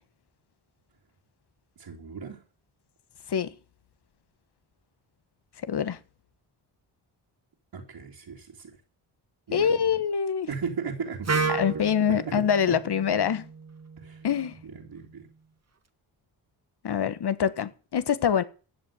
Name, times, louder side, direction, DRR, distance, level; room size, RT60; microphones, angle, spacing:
voice 1, 1.8-2.4 7.7-8.8 9.5-9.8 10.5-11.9 12.2-12.3 12.7-12.8 14.0-14.2 14.6-15.3, right 5 dB, 60° right, 3.6 m, -36 dB
voice 2, 5.6-6.0 9.5-10.5 11.5-13.4 14.2-14.6 16.8-18.4, left 8 dB, 60° left, 1.4 m, -25 dB
Wind instrument woodwind instrument, 11.2-15.1, right 4 dB, 35° right, 1.8 m, -33 dB
14.0 x 8.0 x 9.0 m
cardioid pair, 65°, 46 cm